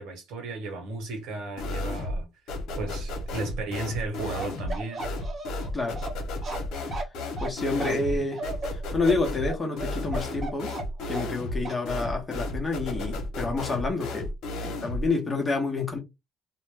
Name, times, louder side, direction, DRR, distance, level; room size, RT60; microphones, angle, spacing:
voice 1, 0.0-5.1 7.9-8.3, right 2 dB, 80° right, 1.3 m, -35 dB
sound 1, 1.6-2.2 2.5-15.1, left 1 dB, 70° left, 0.9 m, -33 dB
Bark, 4.4-11.4 11.6-11.8, right 3 dB, 35° right, 0.9 m, -36 dB
voice 2, 7.4-8.5 8.7-10.7 11.1-14.3 14.6-16.0, left 3 dB, 15° left, 0.8 m, -28 dB
2.5 x 2.1 x 3.2 m
cardioid pair, 155°, 0 cm